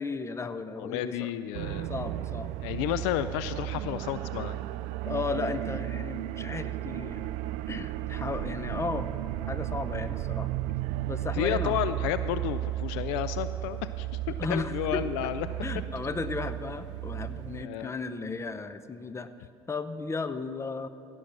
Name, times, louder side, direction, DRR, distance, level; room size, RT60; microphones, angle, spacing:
voice 1, 0.0-1.3 1.9-2.6 5.0-7.3 7.7-9.1 9.5-10.5 11.1-11.8 14.4-15.3 15.6-19.3 19.7-20.9, left 4 dB, 20° left, 12 dB, 0.7 m, -34 dB
voice 2, 0.8-1.9 2.6-4.6 11.3-15.5 17.6-17.9, left 12 dB, 70° left, 13 dB, 0.4 m, -31 dB
sound 1, 1.5-17.7, right 14 dB, 65° right, 0.4 m, -34 dB
16.5 x 6.3 x 5.9 m, 2.7 s
hypercardioid pair, 65°, 13 cm